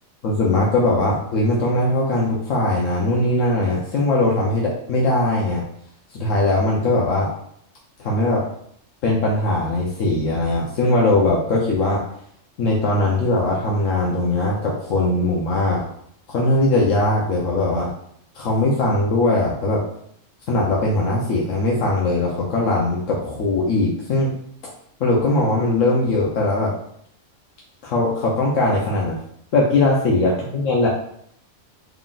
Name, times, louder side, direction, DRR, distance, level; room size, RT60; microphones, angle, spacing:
voice 1, 0.2-5.6 6.1-7.3 8.0-8.5 9.0-12.0 12.6-15.8 16.3-17.9 18.4-19.8 20.5-24.3 25.0-26.7 27.8-29.2 29.5-30.9, left 2 dB, 80° left, -3 dB, 1.1 m, -20 dB
3.6 x 2.4 x 3.8 m, 0.67 s
omnidirectional pair, 1.3 m